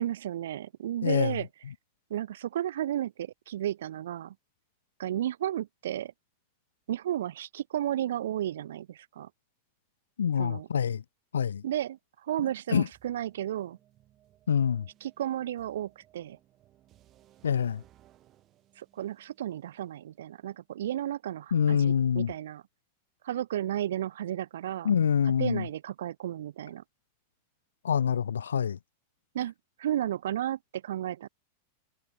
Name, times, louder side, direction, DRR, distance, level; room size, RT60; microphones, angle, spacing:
voice 1, 0.0-1.5 2.1-4.3 5.0-6.1 6.9-9.3 10.4-10.7 11.6-13.8 15.0-16.4 18.8-22.6 23.2-24.9 25.4-26.8 29.3-29.5 29.8-31.3, right 11 dB, 60° right, 0.3 m, -33 dB
voice 2, 1.0-1.4 10.2-11.0 11.3-11.6 12.7-12.9 14.5-14.9 17.4-17.8 21.5-22.3 24.8-25.7 27.8-28.8, left 7 dB, 70° left, 0.5 m, -25 dB
sound 1, 12.9-20.8, right 13 dB, 35° right, 5.7 m, -63 dB
figure-of-eight pair, 90°, 0 cm